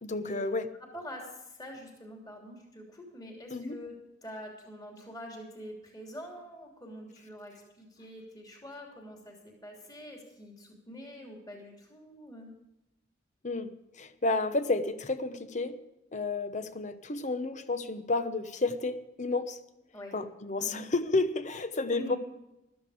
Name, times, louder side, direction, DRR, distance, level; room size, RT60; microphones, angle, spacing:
voice 1, 0.0-0.7 3.5-3.8 13.4-15.8 16.1-19.6 20.1-22.2, left 3 dB, 40° left, 0.9 m, -31 dB
voice 2, 0.9-3.9 4.2-9.4 9.6-12.5 19.9-20.1 20.6-20.9 21.9-22.2, equal, 20° left, 3.0 m, -45 dB
15.5 x 13.0 x 5.0 m
head